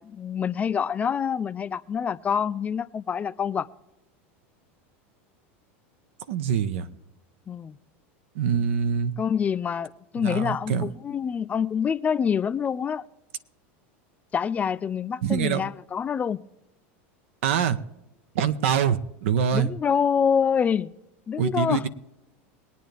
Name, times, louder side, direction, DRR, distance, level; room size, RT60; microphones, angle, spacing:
voice 1, 0.0-3.7 7.5-7.8 9.2-13.1 14.3-16.4 19.5-20.9 21.3-21.9, left 7 dB, 20° left, 0.4 m, -26 dB
voice 2, 6.3-6.9 8.3-9.1 10.2-10.9 15.2-15.6 17.4-17.8 18.3-19.7 21.4-21.9, right 8 dB, 80° right, 0.9 m, -24 dB
22.5 x 9.3 x 3.4 m
supercardioid pair, 130°, 7 cm